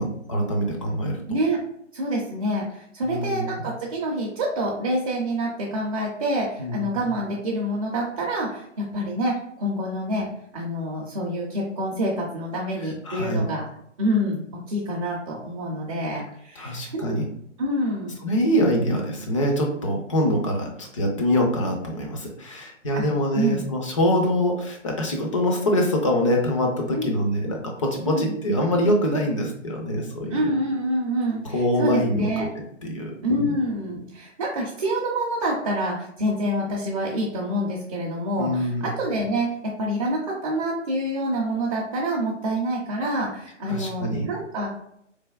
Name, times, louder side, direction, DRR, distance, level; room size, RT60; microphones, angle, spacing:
voice 1, 0.0-1.4 3.0-3.7 6.6-6.9 13.1-13.5 16.6-17.2 18.2-30.4 31.4-32.5 32.8-33.5 38.4-38.9 43.7-44.3, equal, 25° left, 1 dB, 0.5 m, -24 dB
voice 2, 1.3-1.6 1.9-10.3 10.5-13.6 14.0-17.2 17.6-18.2 22.9-23.0 23.3-23.6 26.9-27.1 28.1-28.3 30.3-32.5 33.2-44.7, right 1 dB, 30° right, -4 dB, 0.6 m, -27 dB
3.9 x 3.3 x 2.3 m, 0.74 s
hypercardioid pair, 150°, 37 cm